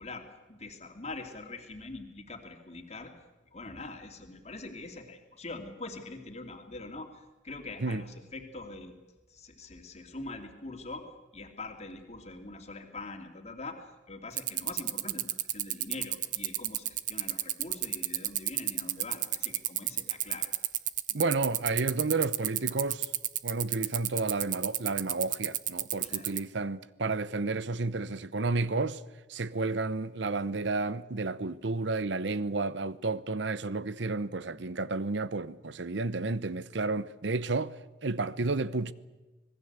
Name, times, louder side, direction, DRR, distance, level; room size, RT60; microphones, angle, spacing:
voice 1, 0.0-3.1 3.5-8.9 9.3-20.5 26.0-26.4, left 2 dB, 35° left, 2.7 m, -43 dB
sound 1, 14.4-26.4, right 13 dB, 45° right, 0.9 m, -29 dB
voice 2, 21.1-23.1 23.4-29.0 29.3-37.7 38.0-38.9, right 3 dB, 75° right, 0.9 m, -31 dB
26.0 x 19.5 x 8.1 m
head